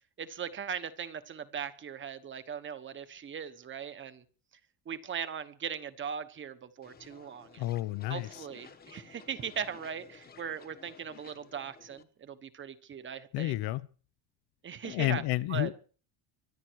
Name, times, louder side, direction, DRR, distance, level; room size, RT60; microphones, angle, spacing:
voice 1, 0.2-4.2 4.9-7.7 8.1-13.6 14.6-15.2 15.5-15.7, right 7 dB, 25° right, 1.1 m, -39 dB
sound 1, 6.8-12.0, left 6 dB, 20° left, 1.1 m, -54 dB
voice 2, 7.6-8.4 13.3-13.9 14.8-15.7, left 17 dB, 55° left, 0.8 m, -31 dB
24.5 x 10.5 x 4.7 m
cardioid pair, 180°, 47 cm